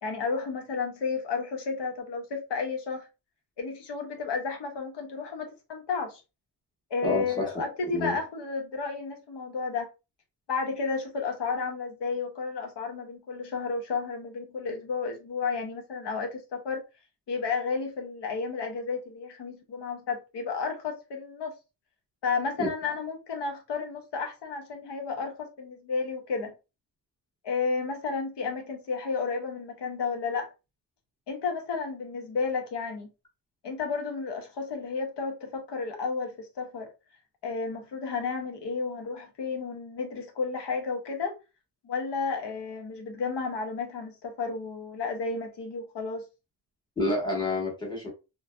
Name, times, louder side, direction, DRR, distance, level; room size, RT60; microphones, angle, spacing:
voice 1, 0.0-3.1 3.6-6.2 6.9-9.9 10.5-16.8 17.3-21.5 22.2-26.5 27.4-30.5 31.3-33.1 33.6-36.9 37.4-41.3 41.8-46.2, left 4 dB, 90° left, 0.8 m, -32 dB
voice 2, 7.0-7.4 7.9-8.2 22.6-22.7 47.0-48.1, left 2 dB, 10° left, 1.1 m, -28 dB
3.1 x 2.5 x 2.2 m
wide cardioid pair, 170°, 40 cm